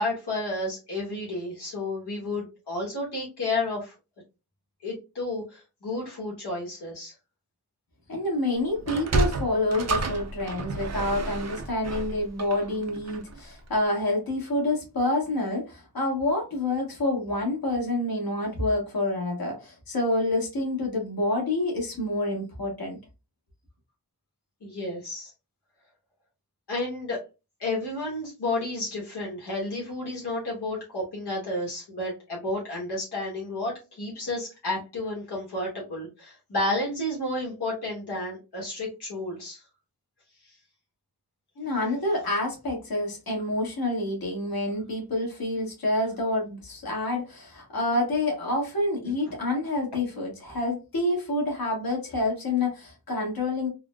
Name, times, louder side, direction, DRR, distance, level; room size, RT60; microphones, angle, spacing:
voice 1, 0.0-3.9 4.8-7.1 24.6-25.3 26.7-27.2 27.6-39.6 40.4-40.6 49.3-49.4, left 2 dB, 75° left, 1.1 m, -31 dB
voice 2, 8.1-23.0 41.6-53.7, left 2 dB, 60° left, 1.3 m, -28 dB
Sliding door, 8.8-13.4, right 3 dB, 40° right, 0.5 m, -30 dB
3.7 x 2.0 x 2.2 m
wide cardioid pair, 115°, 40 cm